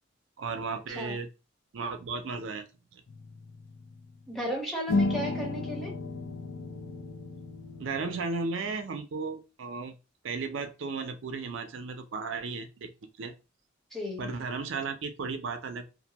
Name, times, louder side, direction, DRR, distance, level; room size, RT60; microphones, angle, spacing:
voice 1, 0.4-1.3 1.7-2.7 2.9-3.0 7.8-9.9 10.2-12.9 13.2-13.3 14.2-15.9, right 4 dB, 75° right, 0.4 m, -34 dB
sound 1, 3.1-4.2 4.9-8.2, left 3 dB, 80° left, 0.5 m, -33 dB
voice 2, 4.3-6.0 13.9-14.3, equal, ahead, 0.7 m, -35 dB
2.4 x 2.2 x 2.7 m
head